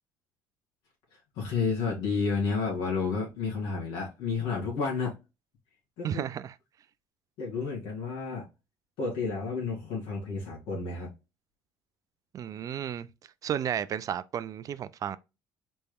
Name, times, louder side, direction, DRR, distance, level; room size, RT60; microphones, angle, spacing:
voice 1, 1.4-5.1 6.0-6.2 7.4-8.5 9.0-11.1, left 4 dB, 80° left, 2.2 m, -31 dB
voice 2, 6.0-6.5 12.3-13.1 13.4-15.2, right 9 dB, 45° right, 0.3 m, -33 dB
4.3 x 3.4 x 2.2 m
supercardioid pair, 90°, 8 cm